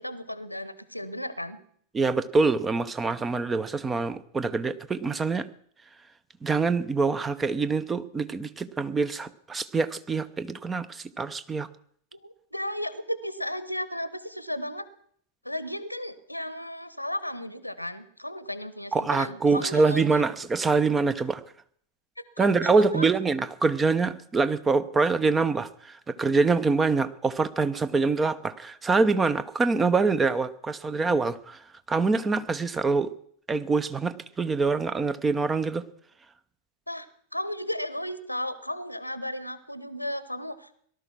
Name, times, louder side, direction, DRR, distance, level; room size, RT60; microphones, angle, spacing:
voice 1, 0.0-1.6 12.1-14.9 15.4-20.2 22.4-23.1 36.9-37.1 37.3-40.7, left 1 dB, 90° left, 16 dB, 1.1 m, -34 dB
voice 2, 1.9-5.5 6.4-11.7 18.9-21.4 22.4-31.6 31.9-33.1 33.5-35.8, right 4 dB, 15° right, 14 dB, 0.8 m, -25 dB
18.5 x 12.0 x 6.0 m, 0.63 s
figure-of-eight pair, 90°, 0 cm